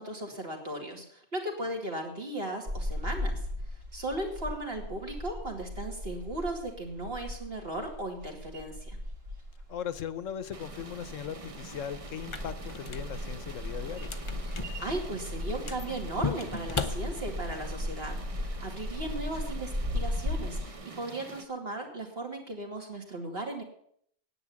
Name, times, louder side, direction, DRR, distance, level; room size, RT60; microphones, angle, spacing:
voice 1, 0.0-3.4 3.9-9.0 14.6-23.6, right 1 dB, 50° right, 2 dB, 2.7 m, -37 dB
sound 1, 2.7-20.7, left 1 dB, 75° right, 3.0 m, -37 dB
voice 2, 9.7-14.1, left 8 dB, 80° left, 14 dB, 1.2 m, -38 dB
sound 2, 10.5-21.4, right 4 dB, 30° right, 0.8 m, -46 dB
sound 3, 12.2-17.7, left 4 dB, 30° left, 0.6 m, -38 dB
9.9 x 8.9 x 8.6 m, 0.66 s
omnidirectional pair, 1.3 m